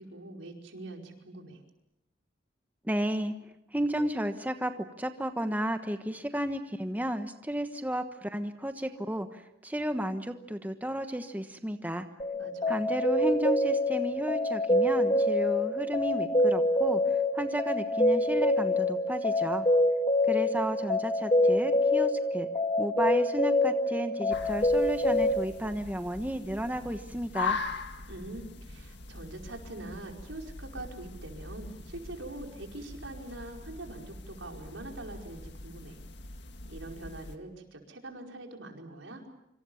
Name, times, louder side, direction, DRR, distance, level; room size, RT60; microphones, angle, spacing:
voice 1, 0.0-1.6 12.4-12.8 28.1-36.0 36.7-39.2, right 2 dB, 90° right, 2 dB, 5.1 m, -43 dB
voice 2, 2.8-3.3 3.7-12.1 12.7-17.0 17.3-19.6 20.3-22.5 22.8-27.6, right 1 dB, 10° right, 7 dB, 1.2 m, -33 dB
sound 1, 12.2-25.4, left 1 dB, 30° left, 2.2 m, -26 dB
sound 2, 24.3-37.4, left 4 dB, 60° left, 2.0 m, -41 dB
26.5 x 26.0 x 7.2 m, 0.84 s
head